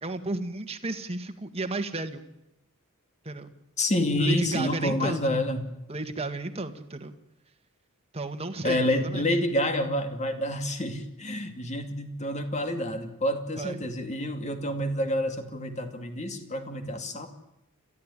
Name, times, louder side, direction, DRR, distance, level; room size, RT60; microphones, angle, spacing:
voice 1, 0.0-2.2 3.2-3.5 4.2-5.4 5.9-7.1 8.1-9.4 13.6-13.8, right 2 dB, 25° right, 7 dB, 1.8 m, -33 dB
voice 2, 3.8-5.7 8.6-17.3, left 1 dB, 30° left, 7 dB, 2.5 m, -28 dB
29.5 x 14.0 x 9.9 m, 0.91 s
head